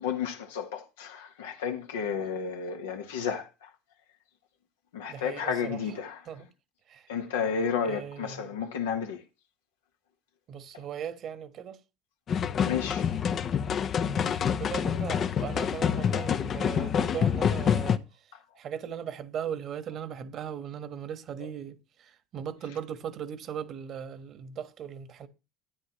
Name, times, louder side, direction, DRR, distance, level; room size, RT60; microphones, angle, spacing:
voice 1, 0.0-3.5 4.9-6.2 7.1-9.2 12.6-13.0, left 7 dB, 80° left, 1.5 m, -32 dB
voice 2, 5.1-6.0 6.2-6.5 6.9-7.1 7.8-8.6 10.5-11.8 14.0-18.0 18.6-25.3, right 8 dB, 50° right, 1.4 m, -38 dB
sound 1, 12.3-18.0, left 8 dB, 45° left, 0.7 m, -27 dB
13.0 x 9.8 x 3.1 m
hypercardioid pair, 75°, 0 cm